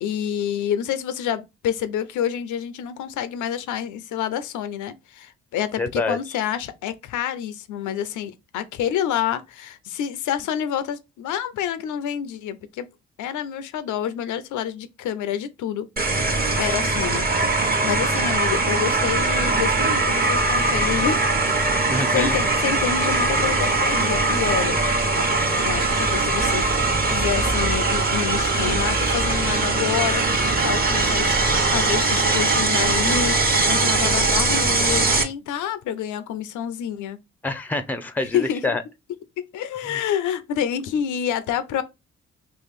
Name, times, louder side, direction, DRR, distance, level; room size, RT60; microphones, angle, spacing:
voice 1, 0.0-12.9 13.2-15.9 16.6-21.4 22.1-24.8 25.6-30.2 30.6-37.2 38.3-38.8 39.4-41.8, left 9 dB, 75° left, 0.6 m, -28 dB
voice 2, 5.8-6.2 21.9-22.4 37.4-38.8 39.9-40.0, left 2 dB, 5° left, 0.6 m, -26 dB
sound 1, 16.0-35.2, right 2 dB, 30° right, 1.0 m, -21 dB
2.9 x 2.8 x 4.0 m
supercardioid pair, 50°, 30 cm